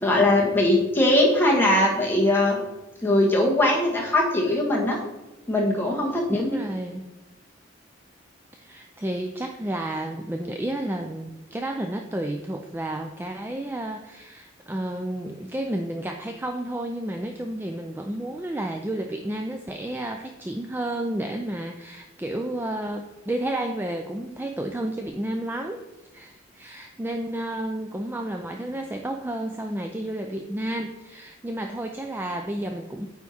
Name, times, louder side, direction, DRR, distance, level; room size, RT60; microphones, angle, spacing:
voice 1, 0.0-2.6 3.0-5.0 5.5-6.6, left 1 dB, 10° left, -2 dB, 1.3 m, -21 dB
voice 2, 6.3-7.1 8.5-25.8 26.1-33.1, right 1 dB, 10° right, 4 dB, 0.3 m, -31 dB
9.0 x 3.6 x 4.2 m, 1.1 s
head